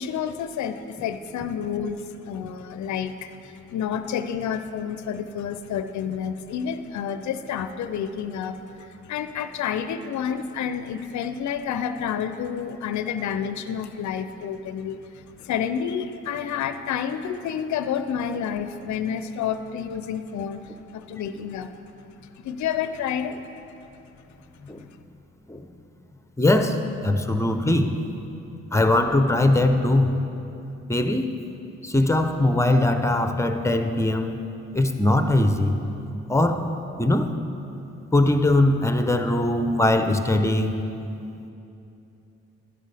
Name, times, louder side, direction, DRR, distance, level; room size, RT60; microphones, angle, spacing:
voice 1, 0.0-21.7 22.3-23.4, left 8 dB, 65° left, 10 dB, 0.5 m, -29 dB
voice 2, 26.4-27.9 28.7-30.1 30.9-31.3 31.8-34.4 34.7-35.8 36.3-36.7 37.0-37.3 38.1-40.8, left 1 dB, 10° left, 7 dB, 0.8 m, -21 dB
11.5 x 10.0 x 3.4 m, 2.8 s
supercardioid pair, 45°, 31 cm